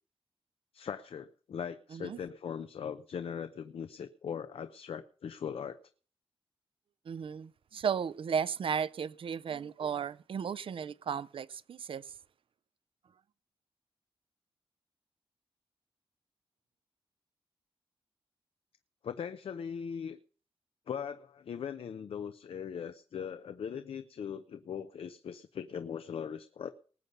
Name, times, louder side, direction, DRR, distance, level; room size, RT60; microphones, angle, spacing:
voice 1, 0.7-5.8 19.0-20.2 20.9-26.7, left 7 dB, 80° left, 0.6 m, -40 dB
voice 2, 7.1-12.0, right 7 dB, 70° right, 0.5 m, -35 dB
19.5 x 8.1 x 5.4 m
wide cardioid pair, 90°, 9 cm